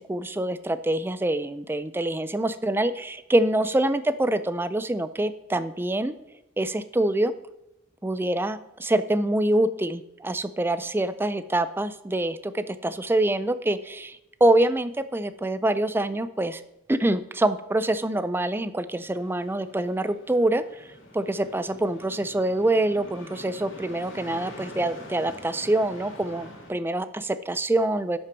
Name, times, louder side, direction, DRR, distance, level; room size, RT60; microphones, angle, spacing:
voice 1, 0.0-6.2 6.6-7.3 8.0-16.6 16.9-20.9 21.1-28.2, right 1 dB, 10° right, 13 dB, 0.4 m, -25 dB
sound 1, 19.0-26.7, left 1 dB, 80° left, 2.2 m, -45 dB
11.0 x 5.9 x 4.6 m, 0.89 s
head